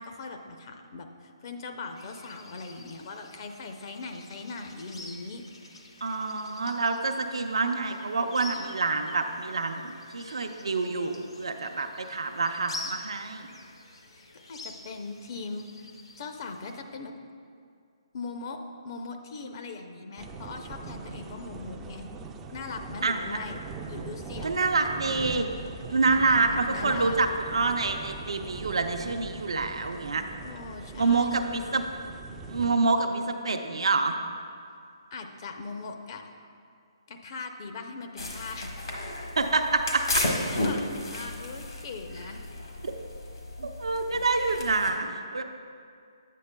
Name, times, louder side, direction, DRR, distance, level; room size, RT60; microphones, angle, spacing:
voice 1, 0.0-5.4 14.1-15.9 16.2-17.2 18.1-18.6 18.8-22.1 22.5-23.6 23.9-24.6 26.1-27.2 30.4-31.3 35.1-36.3 37.1-38.7 40.1-42.4, left 3 dB, 50° left, 5 dB, 0.6 m, -40 dB
sound 1, 1.9-16.8, left 3 dB, 85° left, 0.9 m, -47 dB
voice 2, 6.0-13.5 23.0-23.4 24.4-25.5 25.9-30.2 31.0-31.8 32.5-34.2 39.4-40.2 42.8-42.9 43.6-45.4, right 3 dB, 80° right, 5 dB, 0.6 m, -27 dB
sound 2, 20.2-32.7, right 4 dB, 15° right, 0.3 m, -41 dB
sound 3, 38.2-44.9, left 2 dB, 70° left, 1.3 m, -33 dB
9.4 x 8.3 x 2.2 m, 2.3 s
hypercardioid pair, 150°, 3 cm